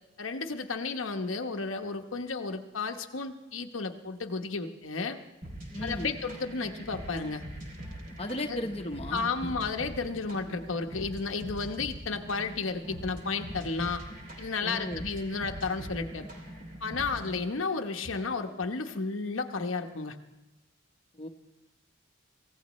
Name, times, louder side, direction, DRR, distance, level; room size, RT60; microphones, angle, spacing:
voice 1, 0.2-5.2 5.8-7.4 8.5-8.6 9.1-14.0 14.4-16.3 16.8-20.2, left 4 dB, 85° left, 4 dB, 1.0 m, -33 dB
sound 1, 5.4-17.4, right 1 dB, 45° right, 2.9 m, -43 dB
voice 2, 5.7-6.1 8.2-9.5 14.6-15.0 21.1-21.3, left 1 dB, 30° left, 2 dB, 1.0 m, -36 dB
26.0 x 16.0 x 3.1 m, 1.0 s
head